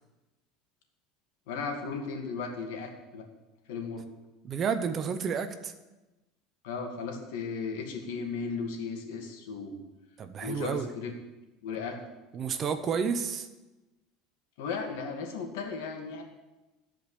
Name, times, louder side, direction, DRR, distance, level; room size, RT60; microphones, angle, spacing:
voice 1, 1.5-3.3 3.7-4.0 6.6-9.8 10.4-11.1 11.6-12.0 14.6-16.2, left 5 dB, 75° left, 3 dB, 2.3 m, -36 dB
voice 2, 4.4-5.7 10.2-10.9 12.3-13.5, right 6 dB, 25° right, 9 dB, 0.7 m, -30 dB
14.0 x 5.2 x 8.3 m, 1.1 s
cardioid pair, 175°, 0 cm